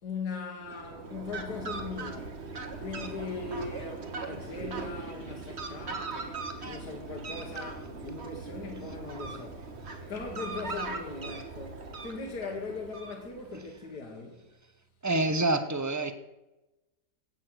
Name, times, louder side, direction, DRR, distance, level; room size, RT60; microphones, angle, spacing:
voice 1, 0.0-2.5 2.8-9.8 10.1-14.5, left 4 dB, 60° left, 2.1 m, -40 dB
Fowl, 0.6-13.6, right 3 dB, 35° right, 1.6 m, -39 dB
voice 2, 15.0-16.1, right 2 dB, 15° right, 0.6 m, -27 dB
17.0 x 6.9 x 7.9 m
omnidirectional pair, 2.0 m